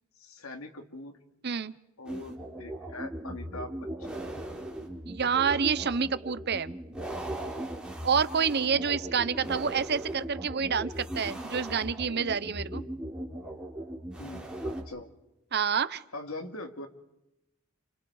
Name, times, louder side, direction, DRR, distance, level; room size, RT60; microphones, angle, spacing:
voice 1, 0.2-1.2 2.0-4.2 12.7-12.9 14.2-15.1 16.1-16.9, left 2 dB, 85° left, 5 dB, 2.5 m, -42 dB
voice 2, 1.4-1.7 5.1-6.7 8.0-12.8 15.5-16.0, right 6 dB, 50° right, 15 dB, 0.8 m, -28 dB
sound 1, 2.1-14.8, right 1 dB, 5° right, 4.3 m, -38 dB
29.5 x 28.5 x 4.8 m, 0.90 s
head